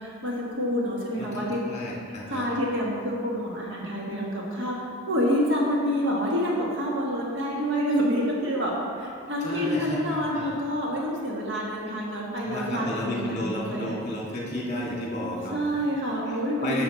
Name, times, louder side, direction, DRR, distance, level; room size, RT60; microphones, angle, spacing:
voice 1, 0.0-1.6 2.3-4.7 5.1-8.7 9.0-13.9 15.5-16.8, equal, 60° right, -3 dB, 1.7 m, -27 dB
voice 2, 1.2-2.5 9.4-10.5 12.4-15.7 16.3-16.8, left 1 dB, 35° left, -3 dB, 1.8 m, -32 dB
9.9 x 6.5 x 4.1 m, 2.3 s
head